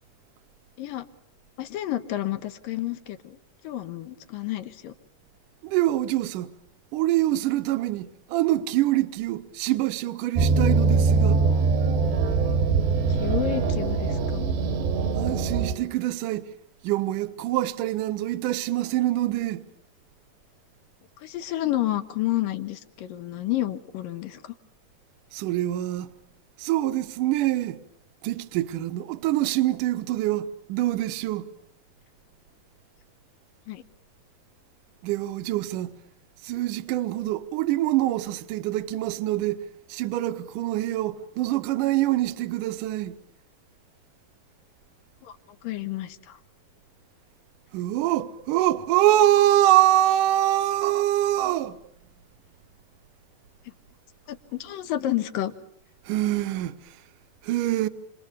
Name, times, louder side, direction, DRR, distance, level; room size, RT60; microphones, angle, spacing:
voice 1, 1.6-3.4 3.6-4.9 13.1-14.5 21.2-24.5 33.7-33.8 45.2-45.3 45.6-46.4 54.3-55.5, left 13 dB, 65° left, 2.6 m, -30 dB
voice 2, 5.6-6.5 6.9-11.4 15.2-16.5 16.8-19.6 25.3-26.1 26.6-27.8 28.2-31.5 35.0-35.9 36.4-43.1 47.7-51.8 56.1-56.8 57.4-57.9, right 14 dB, 65° right, 2.3 m, -25 dB
sound 1, 10.4-15.7, right 4 dB, 85° right, 4.5 m, -22 dB
28.5 x 28.0 x 6.9 m
omnidirectional pair, 4.8 m